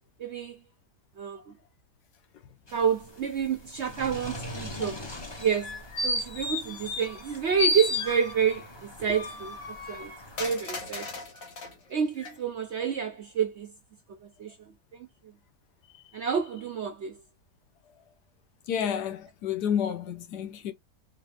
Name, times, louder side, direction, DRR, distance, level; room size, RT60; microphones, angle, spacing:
voice 1, 0.2-0.6 1.2-1.5 2.7-5.0 5.4-10.1 10.4-11.1 11.9-13.7 14.2-14.6 14.9-15.1 16.1-17.2, right 7 dB, 60° right, 0.7 m, -29 dB
sound 1, 2.7-10.5, left 1 dB, 25° left, 0.6 m, -44 dB
sound 2, 5.4-7.3 7.6-8.6 9.1-11.7 12.2-12.3, left 2 dB, 55° left, 1.7 m, -32 dB
voice 2, 18.7-20.7, left 8 dB, 75° left, 1.4 m, -30 dB
4.6 x 2.9 x 3.3 m
omnidirectional pair, 1.8 m